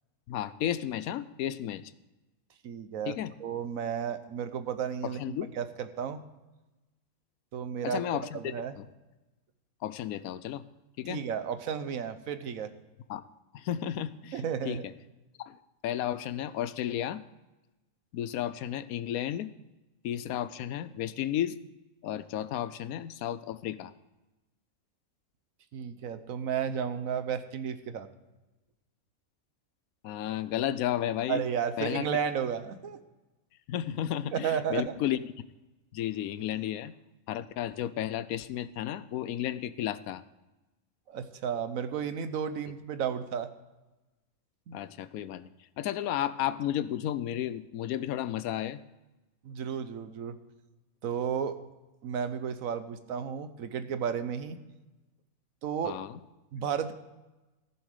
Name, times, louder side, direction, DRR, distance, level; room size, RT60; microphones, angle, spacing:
voice 1, 0.3-1.8 3.1-3.3 5.0-5.5 7.8-8.9 9.8-10.6 11.0-11.2 13.1-13.2 13.5-14.8 15.4-15.6 15.8-17.2 18.1-19.5 20.0-21.6 22.0-23.9 30.0-31.4 31.8-32.1 33.7-35.2 35.9-36.9 37.3-40.2 44.7-45.5 45.8-48.8 55.8-56.2, left 11 dB, 80° left, 15 dB, 1.0 m, -33 dB
voice 2, 2.6-3.1 3.4-6.2 7.5-8.0 8.3-8.7 11.1-12.7 14.3-14.9 25.7-28.1 31.3-33.0 34.3-34.9 41.1-43.5 44.7-44.8 49.4-50.4 51.0-51.6 52.0-54.6 55.6-56.0 56.5-56.9, right 7 dB, 70° right, 11 dB, 1.2 m, -33 dB
15.0 x 7.2 x 4.9 m, 1.1 s
omnidirectional pair, 1.5 m